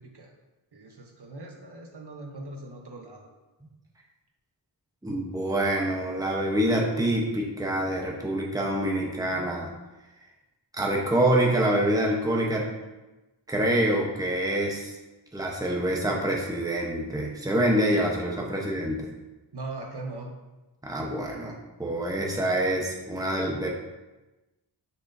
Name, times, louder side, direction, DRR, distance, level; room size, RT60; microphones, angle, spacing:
voice 1, 0.7-3.3 19.5-20.3, right 2 dB, 60° right, 1 dB, 1.1 m, -40 dB
voice 2, 5.0-9.7 10.7-12.7 13.5-14.9 15.3-19.1 20.8-23.7, right 1 dB, 10° right, -2 dB, 1.0 m, -26 dB
7.1 x 6.1 x 2.7 m, 1.1 s
wide cardioid pair, 90°, 45 cm